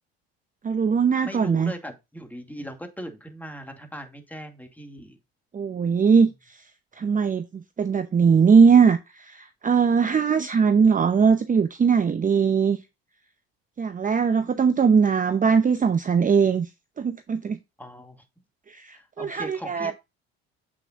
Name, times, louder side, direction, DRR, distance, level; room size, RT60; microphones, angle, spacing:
voice 1, 0.6-1.7 5.5-6.3 7.0-12.8 13.8-16.7 17.0-17.6 18.7-19.9, right 6 dB, 25° right, 0.8 m, -20 dB
voice 2, 1.2-5.2 17.8-18.2 18.9-19.9, equal, 5° left, 2.2 m, -39 dB
8.1 x 5.8 x 2.5 m
hypercardioid pair, 75°, 31 cm